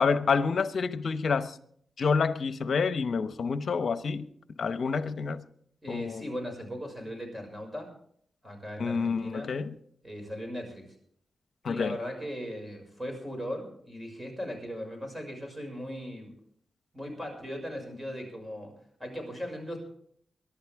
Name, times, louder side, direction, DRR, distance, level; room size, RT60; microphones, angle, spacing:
voice 1, 0.0-1.6 2.0-4.3 4.6-5.4 5.9-6.2 8.8-9.7 11.6-12.0, left 5 dB, 65° left, 0.9 m, -28 dB
voice 2, 5.8-7.9 8.4-9.5 10.0-10.9 11.7-16.3 16.9-18.7 19.0-19.8, equal, 15° right, 6.0 m, -38 dB
23.5 x 11.5 x 3.6 m
cardioid pair, 85°, 0 cm